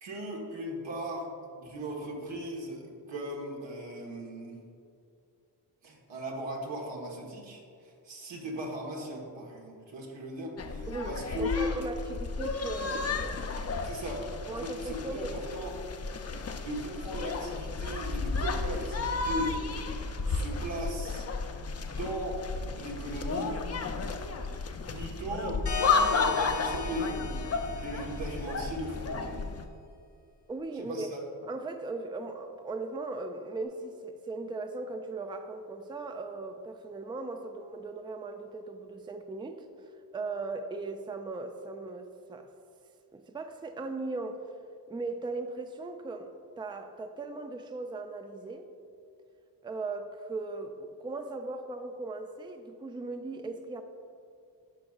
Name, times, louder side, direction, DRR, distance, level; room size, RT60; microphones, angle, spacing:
voice 1, 0.0-1.3 1.5-4.6 5.8-11.6 13.8-14.3 14.6-15.7 16.6-19.8 20.3-21.2 21.8-22.4 22.7-23.5 24.9-29.4 30.7-31.2, right 1 dB, 85° right, -2 dB, 1.4 m, -38 dB
sound 1, 10.6-29.7, left 4 dB, 35° left, 0.6 m, -33 dB
voice 2, 10.9-13.6 14.5-15.3 30.5-31.1 31.4-42.5 43.1-44.6 44.9-48.7 49.6-53.8, right 3 dB, 10° right, 6 dB, 0.4 m, -38 dB
sound 2, 25.7-29.1, left 6 dB, 70° left, 1.1 m, -37 dB
11.0 x 5.1 x 2.4 m, 2.5 s
cardioid pair, 60°, 42 cm